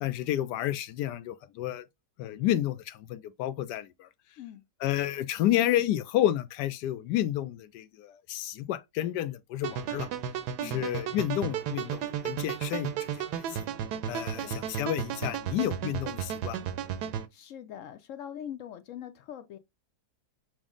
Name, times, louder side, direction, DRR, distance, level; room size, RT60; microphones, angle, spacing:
voice 1, 0.0-1.8 2.2-4.1 4.8-10.1 10.6-13.6 14.1-16.7, left 12 dB, 85° left, 1.2 m, -30 dB
sound 1, 9.6-17.3, right 9 dB, 75° right, 1.2 m, -34 dB
voice 2, 10.6-10.9 14.3-14.6 17.3-19.6, left 10 dB, 70° left, 0.8 m, -42 dB
6.1 x 2.1 x 3.7 m
omnidirectional pair, 1.8 m